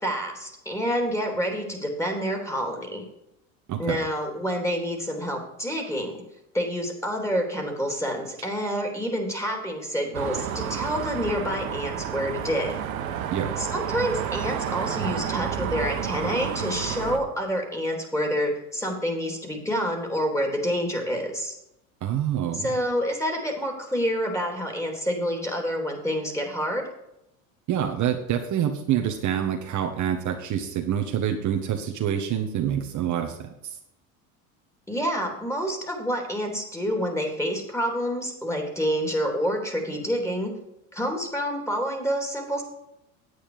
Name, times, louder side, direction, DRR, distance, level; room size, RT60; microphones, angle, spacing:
voice 1, 0.0-3.0 3.8-6.2 6.5-12.8 13.6-21.5 22.5-26.8 34.9-40.5 40.9-42.6, equal, 5° left, 3 dB, 3.3 m, -28 dB
sound 1, 10.1-17.2, right 9 dB, 85° right, 1.5 m, -30 dB
voice 2, 22.0-22.7 27.7-33.8, right 9 dB, 45° right, 3 dB, 1.4 m, -26 dB
9.6 x 8.5 x 5.0 m, 0.84 s
hypercardioid pair, 90°, 41 cm